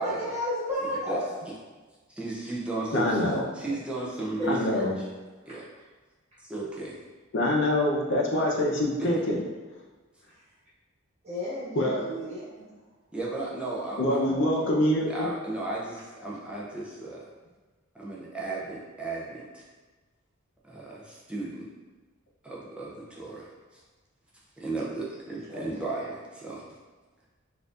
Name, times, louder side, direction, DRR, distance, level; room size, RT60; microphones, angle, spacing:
voice 1, 0.0-1.3 3.1-3.2 4.4-4.5 11.2-12.7 14.3-14.7 25.5-26.0, left 1 dB, 30° right, -9 dB, 1.3 m, -33 dB
voice 2, 2.1-3.2 3.6-5.1 5.5-5.7 6.4-7.0 9.0-9.1 13.1-14.2 15.1-17.2 17.9-19.6 20.6-21.7 22.4-23.8 24.6-26.7, right 2 dB, 5° right, -5 dB, 0.4 m, -35 dB
voice 3, 2.9-3.4 4.5-5.0 7.3-9.4 11.7-12.0 14.0-15.3, left 1 dB, 60° left, -2 dB, 0.7 m, -25 dB
4.5 x 2.5 x 2.4 m, 1.3 s
head